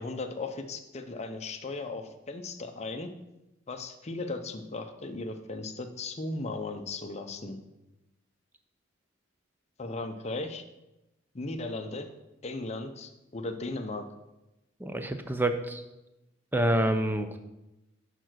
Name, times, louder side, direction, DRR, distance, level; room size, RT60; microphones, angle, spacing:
voice 1, 0.0-3.1 3.7-7.6 9.8-10.6 11.3-12.1 12.4-14.1, left 2 dB, 35° left, 6 dB, 0.6 m, -36 dB
voice 2, 14.8-15.8 16.5-17.4, right 1 dB, 10° right, 8 dB, 0.5 m, -27 dB
6.9 x 4.4 x 6.2 m, 0.95 s
head